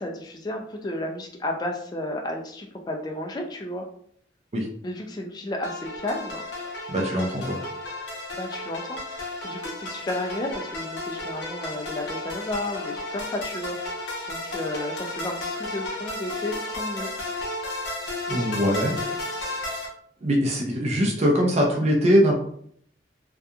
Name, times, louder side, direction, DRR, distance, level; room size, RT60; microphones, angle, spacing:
voice 1, 0.0-3.9 4.8-6.4 8.3-9.0 9.4-17.1 18.3-19.1, left 1 dB, 25° left, 1 dB, 0.3 m, -33 dB
sound 1, 5.6-19.9, left 2 dB, 80° left, 0.7 m, -33 dB
voice 2, 6.9-7.6 18.3-18.9 19.2-19.7 20.2-22.3, equal, 40° right, 0 dB, 0.5 m, -22 dB
2.7 x 2.3 x 2.3 m, 0.64 s
head